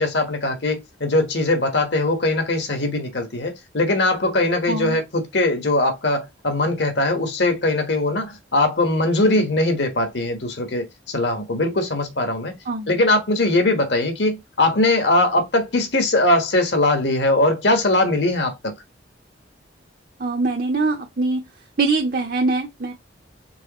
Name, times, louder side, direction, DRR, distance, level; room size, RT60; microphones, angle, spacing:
voice 1, 0.0-12.5 12.9-18.7, left 2 dB, 65° left, 1.4 m, -21 dB
voice 2, 4.7-5.0 12.7-12.9 20.2-21.4 21.8-22.9, right 3 dB, 50° right, 0.7 m, -23 dB
4.7 x 3.7 x 3.0 m
head